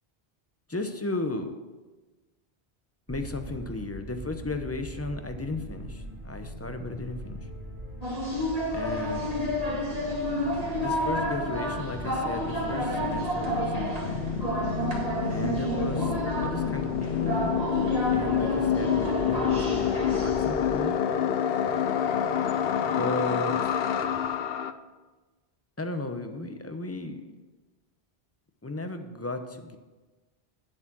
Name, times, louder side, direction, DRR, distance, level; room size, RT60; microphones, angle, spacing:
voice 1, 0.7-1.5 3.1-7.5 8.7-9.3 10.8-14.2 15.3-16.1 16.4-17.5 18.1-21.0 22.7-23.7 25.8-27.3 28.6-29.8, left 2 dB, 15° left, 7 dB, 0.6 m, -35 dB
sound 1, 3.1-20.7, right 1 dB, 10° right, 3.4 m, -41 dB
sound 2, 8.0-24.3, equal, 35° right, 2.0 m, -32 dB
sound 3, 9.2-9.3 9.5-24.7, left 8 dB, 70° left, 0.8 m, -29 dB
9.3 x 7.3 x 6.0 m, 1.2 s
omnidirectional pair, 1.1 m